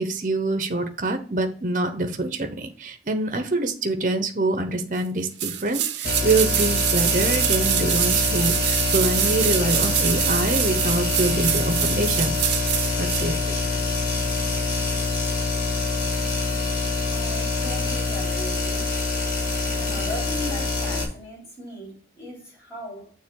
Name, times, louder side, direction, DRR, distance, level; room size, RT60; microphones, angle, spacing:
voice 1, 0.0-12.3 13.0-13.4, right 2 dB, 45° right, 0.8 m, -25 dB
sound 1, 5.4-13.3 13.6-13.7, right 11 dB, 80° right, 0.7 m, -25 dB
sound 2, 6.0-21.0, left 3 dB, 50° left, 2.2 m, -25 dB
voice 2, 17.1-18.9 19.8-23.1, equal, 15° left, 3.8 m, -38 dB
6.8 x 3.4 x 6.2 m
head